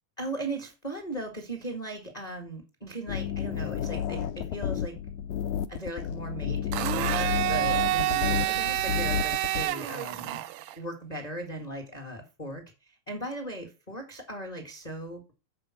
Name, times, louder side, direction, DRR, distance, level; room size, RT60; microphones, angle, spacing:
voice 1, 0.2-4.9 5.7-10.4 10.7-15.3, right 1 dB, 25° left, 2 dB, 0.9 m, -38 dB
sound 1, 3.1-9.7, left 9 dB, 90° left, 1.7 m, -31 dB
Domestic sounds home sounds, 6.7-10.7, right 15 dB, 85° right, 1.8 m, -28 dB
7.6 x 5.2 x 6.0 m, 0.29 s
omnidirectional pair, 4.1 m